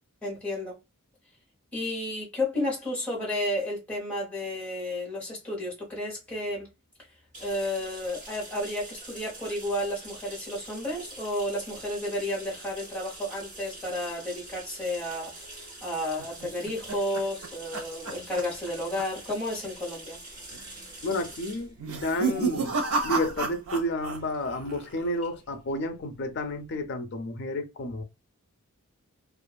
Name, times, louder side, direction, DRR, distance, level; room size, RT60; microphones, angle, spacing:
voice 1, 0.2-0.8 1.7-6.7 7.4-20.2, left 1 dB, 5° left, 1.0 m, -32 dB
sound 1, 7.3-26.8, right 2 dB, 35° right, 1.4 m, -46 dB
sound 2, 16.2-18.7 19.0-19.3 19.6-19.7 20.5-20.9 21.8-24.2 24.4-25.0, right 4 dB, 85° right, 0.7 m, -31 dB
voice 2, 21.0-22.7 23.0-28.0, left 1 dB, 50° left, 0.5 m, -31 dB
2.4 x 2.4 x 2.2 m
head